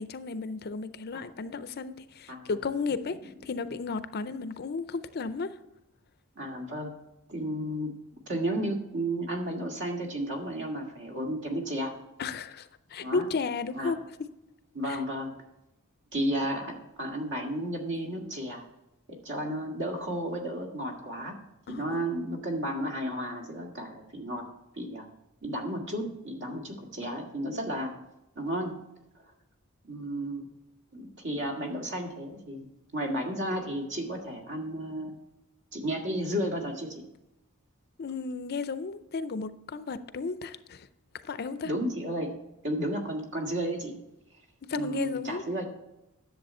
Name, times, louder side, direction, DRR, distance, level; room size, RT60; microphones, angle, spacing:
voice 1, 0.0-5.5 12.2-14.0 14.9-15.0 21.7-22.2 38.0-40.9 41.2-41.7 44.7-45.4, left 4 dB, 50° left, 0.5 m, -34 dB
voice 2, 6.4-6.9 7.3-8.0 8.3-11.9 13.0-13.3 13.7-13.9 14.7-15.3 16.1-18.6 19.1-21.4 21.7-24.5 24.8-25.1 25.4-28.0 28.4-28.8 29.8-30.5 30.9-32.7 32.9-35.1 35.7-37.0 41.6-42.3 42.6-43.9 44.7-45.6, right 1 dB, 60° right, 1.9 m, -33 dB
10.5 x 7.2 x 4.3 m
head